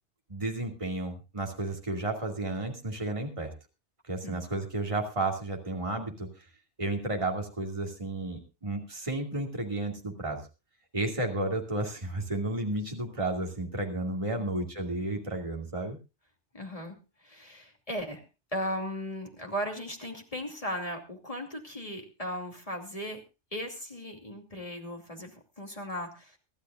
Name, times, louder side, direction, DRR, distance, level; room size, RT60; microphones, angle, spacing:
voice 1, 0.3-3.5 4.1-6.5 6.8-10.4 10.9-16.0, right 2 dB, 30° right, 2 dB, 2.5 m, -32 dB
voice 2, 16.5-18.2 18.5-23.2 23.5-26.4, equal, 30° left, 2 dB, 2.8 m, -37 dB
24.5 x 12.0 x 2.5 m, 0.29 s
omnidirectional pair, 1.2 m